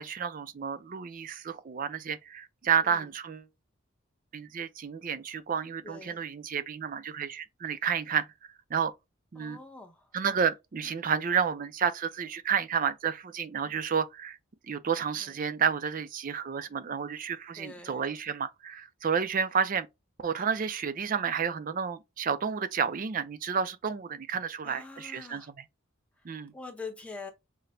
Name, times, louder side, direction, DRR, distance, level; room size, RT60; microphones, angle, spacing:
voice 1, 0.0-3.5 4.3-8.3 8.7-8.9 9.3-9.6 10.1-14.4 14.7-19.9 20.2-25.6 26.2-26.5, right 7 dB, 40° right, 0.4 m, -31 dB
voice 2, 5.8-6.2 9.3-10.1 15.2-15.3 17.2-17.3 17.6-18.0 24.6-25.5 26.5-27.3, left 4 dB, 5° left, 0.7 m, -44 dB
5.8 x 2.1 x 2.6 m
head